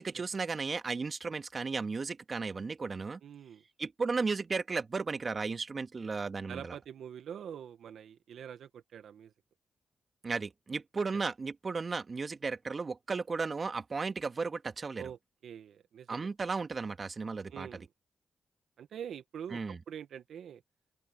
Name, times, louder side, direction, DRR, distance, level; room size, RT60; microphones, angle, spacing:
voice 1, 0.0-3.2 3.8-6.7 10.2-15.0 16.1-17.7 19.5-19.8, right 4 dB, 45° right, 1.7 m, -35 dB
voice 2, 3.2-3.6 6.0-6.1 6.5-9.3 14.9-16.3 17.5-17.9 18.8-20.6, right 8 dB, 80° right, 1.1 m, -45 dB
open air
supercardioid pair, 50°, 0 cm